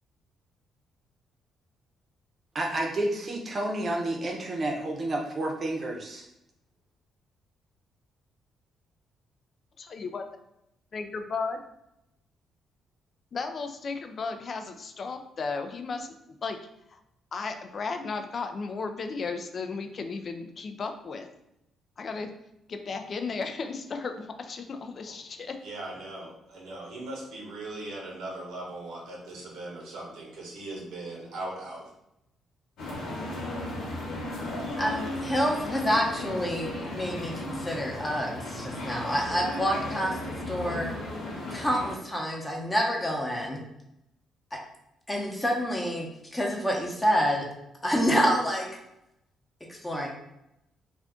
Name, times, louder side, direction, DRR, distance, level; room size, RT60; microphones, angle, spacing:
voice 1, 2.5-6.2, right 1 dB, 40° right, 0 dB, 0.7 m, -30 dB
voice 2, 9.8-10.2 10.9-11.6 13.3-16.6 16.9-17.0 17.3-21.3 22.0-22.3 22.7-25.6, left 4 dB, 45° left, 7 dB, 0.4 m, -34 dB
voice 3, 25.6-31.8, right 2 dB, 85° right, -2 dB, 1.0 m, -39 dB
sound 1, 32.8-41.9, left 1 dB, 85° left, 0.9 m, -35 dB
voice 4, 34.8-40.1 40.5-40.9 41.5-43.6 45.1-47.4 47.8-48.7 49.7-50.1, equal, 15° left, 0 dB, 0.8 m, -28 dB
2.5 x 2.3 x 3.5 m, 0.84 s
cardioid pair, 90°, 0 cm